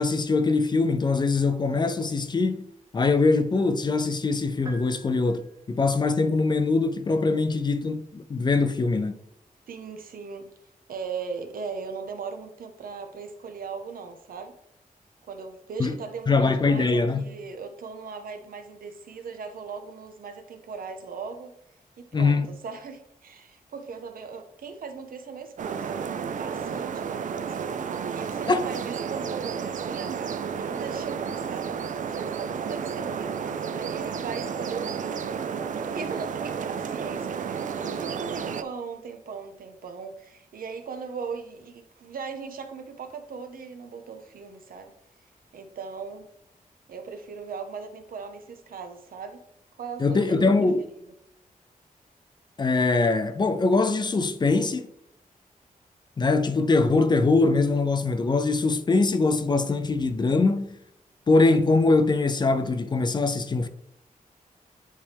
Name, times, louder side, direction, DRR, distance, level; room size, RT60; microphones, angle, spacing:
voice 1, 0.0-2.6 2.9-9.1 15.8-16.0 16.3-17.3 22.1-22.5 28.5-28.6 50.0-50.8 52.6-54.9 56.2-60.8 61.3-63.7, left 3 dB, 30° left, 0.4 m, -22 dB
sound 1, 4.7-6.0, right 2 dB, 25° right, 0.9 m, -47 dB
voice 2, 9.7-10.5 10.9-14.5 15.2-21.5 22.0-27.8 28.1-35.2 35.7-44.9 45.5-46.3 46.9-49.4 49.8-50.5 50.9-51.0, right 5 dB, 80° right, 0.9 m, -39 dB
sound 2, 25.6-38.6, right 6 dB, 65° right, 0.4 m, -32 dB
9.7 x 3.3 x 3.4 m
wide cardioid pair, 170°, 14 cm